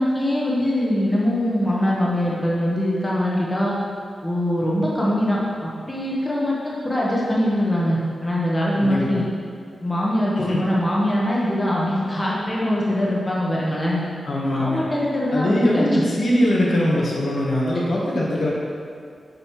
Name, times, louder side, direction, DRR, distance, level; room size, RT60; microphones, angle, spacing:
voice 1, 0.0-3.7 4.2-9.2 9.8-14.0 14.5-15.9, left 1 dB, 15° left, -6 dB, 1.3 m, -22 dB
voice 2, 8.8-9.2 10.4-10.6 14.2-14.8 15.3-18.5, left 1 dB, 60° left, -4 dB, 1.7 m, -21 dB
7.6 x 6.4 x 4.8 m, 2.2 s
wide cardioid pair, 155°, 0 cm